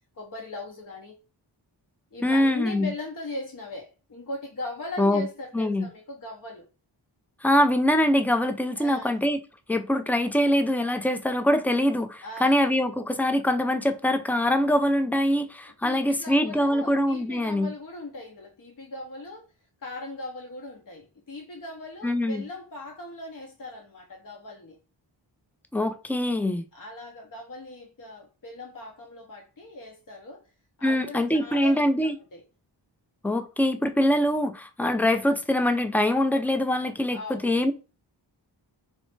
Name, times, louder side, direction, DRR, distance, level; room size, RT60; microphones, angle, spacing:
voice 1, 0.2-1.1 2.1-6.6 8.8-9.2 12.2-12.6 15.8-19.4 19.8-24.8 26.7-30.4 30.8-32.4 37.1-37.6, left 2 dB, 45° left, 0.8 m, -39 dB
voice 2, 2.2-2.9 5.0-5.2 5.5-5.9 7.4-9.4 9.7-17.7 22.0-22.4 25.7-26.6 30.8-32.1 33.2-37.7, left 1 dB, 5° left, 0.4 m, -23 dB
3.1 x 2.0 x 3.2 m
cardioid pair, 45°, 44 cm